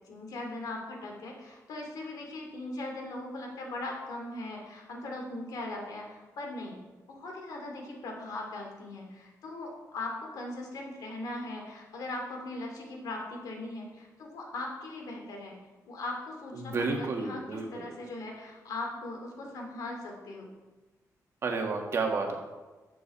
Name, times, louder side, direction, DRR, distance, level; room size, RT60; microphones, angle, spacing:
voice 1, 0.1-6.8 7.1-15.5 15.9-20.5, left 2 dB, 80° left, 1 dB, 2.6 m, -39 dB
voice 2, 16.5-17.9 21.4-22.3, right 4 dB, 45° right, 2 dB, 1.7 m, -31 dB
12.5 x 7.7 x 4.3 m, 1.2 s
wide cardioid pair, 150°, 6 cm